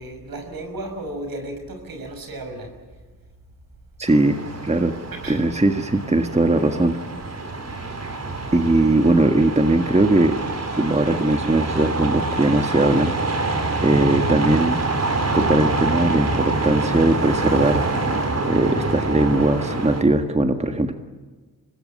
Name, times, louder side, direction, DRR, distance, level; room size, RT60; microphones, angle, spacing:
voice 1, 0.0-3.0 5.1-5.4, right 1 dB, 65° right, 6 dB, 6.0 m, -34 dB
voice 2, 4.0-4.4 4.6-4.9 5.3-7.0 8.5-10.4 10.7-13.1 13.4-13.6 13.8-14.8 15.3-17.9 18.5-20.9, right 2 dB, 15° right, 6 dB, 1.7 m, -19 dB
sound 1, 4.1-20.0, right 2 dB, 40° right, 4.2 m, -26 dB
24.5 x 20.0 x 8.6 m, 1.4 s
cardioid pair, 60°, 38 cm